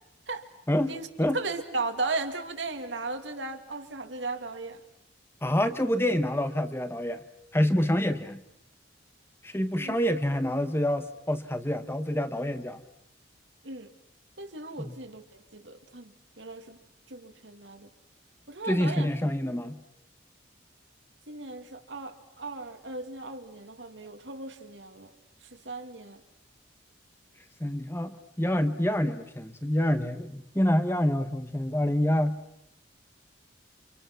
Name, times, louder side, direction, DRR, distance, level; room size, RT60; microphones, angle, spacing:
voice 1, 0.7-1.4 5.4-7.2 7.5-8.4 9.4-12.8 14.8-15.0 18.7-19.8 27.6-32.4, left 1 dB, 10° left, 9 dB, 1.1 m, -27 dB
voice 2, 1.3-4.8 9.8-9.9 13.6-13.9 14.4-15.3 15.5-16.8 17.1-17.9 18.5-19.1 21.3-25.1 25.4-26.2, right 3 dB, 70° right, 6 dB, 2.4 m, -36 dB
30.0 x 26.5 x 6.0 m, 0.78 s
head